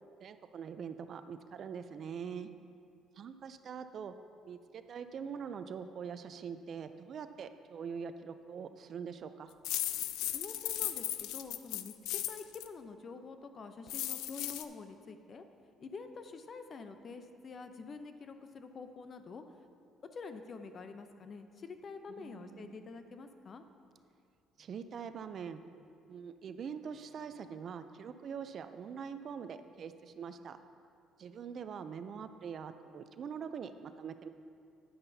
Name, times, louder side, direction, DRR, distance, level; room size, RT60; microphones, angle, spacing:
voice 1, 0.2-2.5 3.2-4.1 4.5-9.5 22.1-22.8 24.6-25.6 26.1-30.6 31.2-34.3, right 7 dB, 55° right, 10 dB, 0.4 m, -43 dB
sound 1, 9.6-12.7 13.9-14.6, left 13 dB, 85° left, 0.3 m, -36 dB
voice 2, 10.3-15.5 15.8-19.4 20.1-23.6, left 4 dB, 45° left, 8 dB, 0.6 m, -47 dB
10.0 x 9.6 x 2.7 m, 2.5 s
cardioid pair, 95°, 0 cm